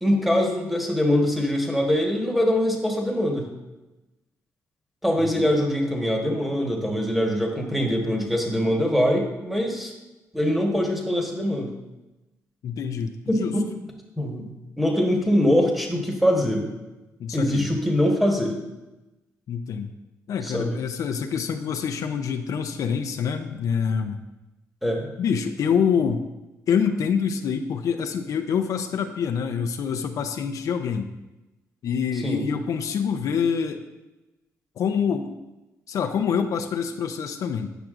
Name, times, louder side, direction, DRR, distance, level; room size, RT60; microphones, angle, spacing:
voice 1, 0.0-3.5 5.0-9.9 10.3-11.7 13.3-13.7 14.2-14.5 14.8-16.7 17.3-18.6 20.4-20.7 24.8-25.1 32.2-32.4, equal, ahead, 1 dB, 1.3 m, -23 dB
voice 2, 12.6-13.5 17.2-17.7 19.5-19.9 20.3-24.2 25.2-26.3 26.7-31.1 31.8-33.8 34.8-35.4 35.9-37.7, left 7 dB, 65° left, 5 dB, 0.5 m, -26 dB
9.0 x 5.8 x 2.5 m, 1.0 s
cardioid pair, 85°, 6 cm